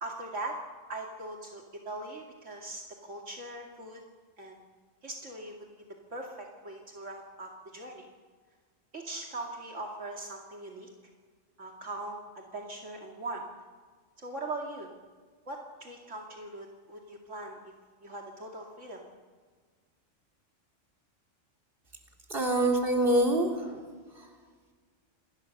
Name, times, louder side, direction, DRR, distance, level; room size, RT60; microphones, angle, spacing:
voice 1, 0.0-0.6 0.9-4.0 4.4-4.6 5.0-5.5 6.1-8.1 8.9-10.9 11.6-13.4 14.2-14.9 15.5-17.7 18.0-19.1, right 2 dB, 75° right, 1 dB, 2.7 m, -40 dB
voice 2, 22.3-23.9 24.1-24.3, right 1 dB, 45° right, 1 dB, 3.8 m, -26 dB
28.5 x 20.5 x 6.6 m, 1.5 s
omnidirectional pair, 1.3 m